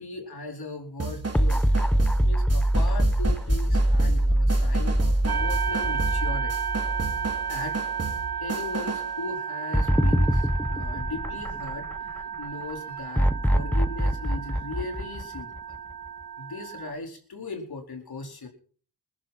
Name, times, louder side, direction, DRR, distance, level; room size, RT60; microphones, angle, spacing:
voice 1, 0.0-1.8 2.2-6.5 7.5-7.8 8.4-15.8 16.4-18.5, left 3 dB, 70° left, 2 dB, 4.7 m, -38 dB
sound 1, 1.0-9.1, right 4 dB, 40° right, 2.9 m, -34 dB
sound 2, 1.3-7.7 8.1-8.2 9.7-12.2 13.2-15.9, right 1 dB, 5° left, 1.0 m, -23 dB
sound 3, 5.3-16.9, right 7 dB, 65° right, 2.0 m, -33 dB
22.0 x 11.0 x 4.4 m, 0.44 s
cardioid pair, 70°, 39 cm